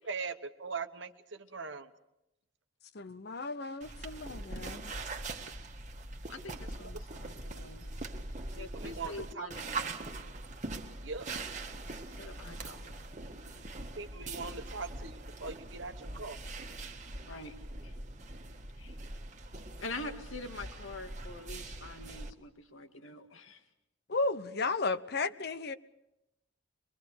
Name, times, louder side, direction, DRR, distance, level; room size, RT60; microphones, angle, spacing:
voice 1, 0.1-1.9 8.5-9.5 11.0-11.3 14.0-16.4, right 4 dB, 65° right, 1.2 m, -41 dB
voice 2, 2.9-4.9 24.1-25.7, left 3 dB, 55° left, 0.9 m, -34 dB
sound 1, 3.8-22.3, right 2 dB, 40° right, 1.6 m, -42 dB
voice 3, 6.3-7.8 8.5-9.7 12.2-13.0 17.3-17.5 17.8-17.9 18.8-19.0 19.8-23.6, left 2 dB, 90° left, 2.1 m, -45 dB
23.5 x 23.0 x 6.8 m
head